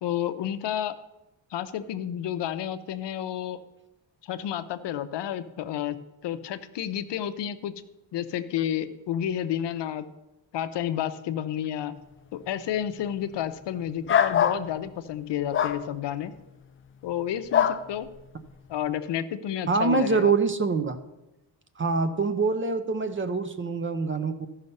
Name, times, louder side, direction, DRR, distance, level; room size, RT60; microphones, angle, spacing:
voice 1, 0.0-1.0 1.5-3.6 4.2-6.0 6.2-7.7 8.1-10.0 10.5-11.9 12.3-16.3 17.0-18.1 18.7-20.3, left 10 dB, 60° left, 11 dB, 0.7 m, -30 dB
sound 1, 14.1-14.6 15.5-15.8 17.5-17.8, left 8 dB, 30° left, 0.4 m, -22 dB
voice 2, 19.7-21.0 21.8-24.5, right 4 dB, 25° right, 10 dB, 0.5 m, -25 dB
13.5 x 5.7 x 5.3 m, 0.97 s
cardioid pair, 130°, 48 cm